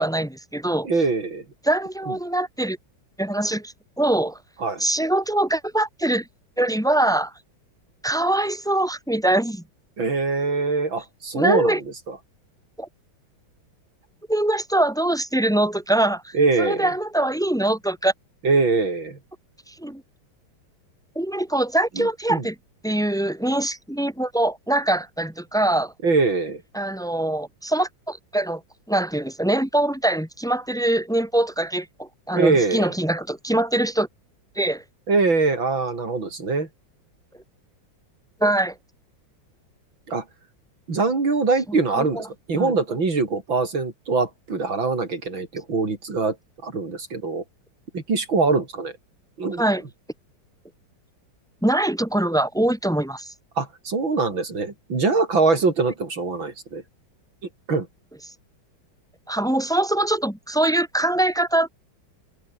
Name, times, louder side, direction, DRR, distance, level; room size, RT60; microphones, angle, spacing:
voice 1, 0.0-0.9 1.6-2.8 3.2-4.4 4.8-6.3 6.6-7.3 8.0-9.6 11.3-11.8 12.8-12.9 14.3-18.1 19.7-20.0 21.2-22.5 22.8-25.9 26.7-28.6 28.9-34.1 34.6-34.8 38.4-38.7 42.0-42.2 42.5-42.7 49.6-49.8 51.6-53.3 59.3-61.7, right 1 dB, ahead, 4.2 m, -23 dB
voice 2, 0.8-1.4 2.1-2.2 4.6-4.8 10.0-11.8 12.1-12.2 16.3-16.9 18.4-19.2 22.0-22.5 26.0-26.6 32.3-32.9 35.1-36.7 40.1-40.2 40.9-46.4 46.6-47.4 47.9-48.9 49.4-49.6 53.6-56.8 57.7-57.9, right 3 dB, 70° right, 4.8 m, -23 dB
open air
omnidirectional pair, 2.2 m